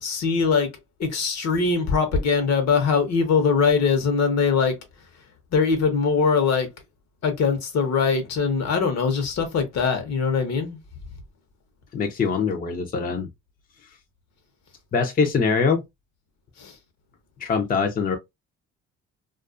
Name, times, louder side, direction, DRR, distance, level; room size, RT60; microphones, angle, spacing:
voice 1, 0.0-0.7 1.0-4.8 5.5-6.7 7.2-10.8 16.6-16.7, left 5 dB, 60° left, 0.9 m, -22 dB
voice 2, 11.9-13.3 14.9-15.8 17.4-18.2, left 5 dB, 30° left, 0.6 m, -23 dB
2.4 x 2.3 x 2.4 m
cardioid pair, 90°, 29 cm